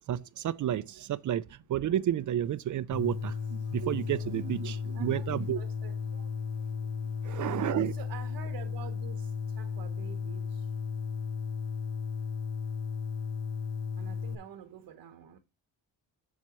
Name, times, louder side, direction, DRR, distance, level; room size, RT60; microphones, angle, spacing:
voice 1, 0.1-1.4 1.7-5.6 7.2-7.9, right 11 dB, 45° right, 0.4 m, -31 dB
sound 1, 2.9-14.3, left 5 dB, 35° left, 0.9 m, -35 dB
voice 2, 4.9-6.0 7.6-10.7 14.0-15.4, right 9 dB, 70° right, 1.1 m, -48 dB
7.3 x 7.3 x 3.0 m
cardioid pair, 145°, 42 cm